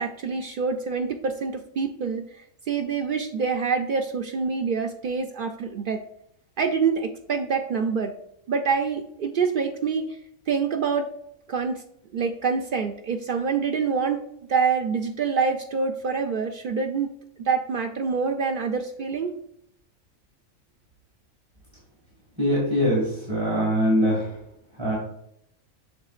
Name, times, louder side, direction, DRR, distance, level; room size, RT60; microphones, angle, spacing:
voice 1, 0.0-2.2 2.7-6.0 6.6-8.1 8.5-10.1 10.5-11.1 11.5-11.8 12.1-14.2 14.5-17.1 17.5-19.4, right 5 dB, 90° right, 4 dB, 0.4 m, -26 dB
voice 2, 22.4-24.3 24.8-25.0, equal, 20° right, -6 dB, 1.8 m, -22 dB
7.2 x 6.3 x 2.4 m, 0.75 s
omnidirectional pair, 1.4 m